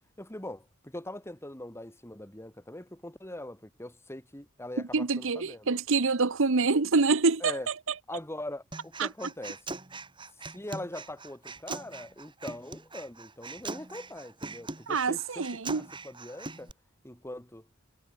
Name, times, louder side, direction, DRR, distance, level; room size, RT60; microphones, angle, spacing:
voice 1, 0.2-5.7 7.4-7.7 8.1-9.6 10.5-16.7 17.0-17.7, left 1 dB, 10° left, 3.0 m, -42 dB
voice 2, 4.9-7.7 9.0-9.1 14.9-15.8, right 4 dB, 65° right, 1.0 m, -26 dB
Human voice, 8.7-16.7, right 3 dB, 25° right, 2.6 m, -42 dB
head